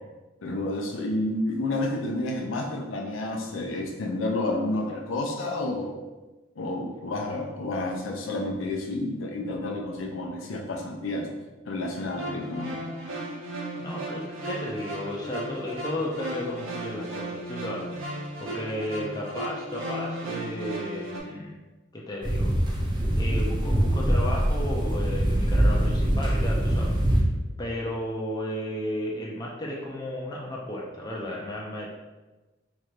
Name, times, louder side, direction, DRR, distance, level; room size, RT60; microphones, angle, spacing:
voice 1, 0.4-6.0 6.6-11.3 11.7-12.8, left 2 dB, 85° left, 1 dB, 0.5 m, -30 dB
sound 1, 12.0-21.2, right 1 dB, 90° right, 0.8 m, -35 dB
voice 2, 13.8-17.9 18.4-21.6 21.9-22.6 23.1-27.2 27.6-31.9, left 1 dB, 20° left, -3 dB, 0.4 m, -34 dB
sound 2, 22.2-27.2, right 1 dB, 25° right, 0.6 m, -23 dB
3.1 x 2.5 x 4.3 m, 1.1 s
head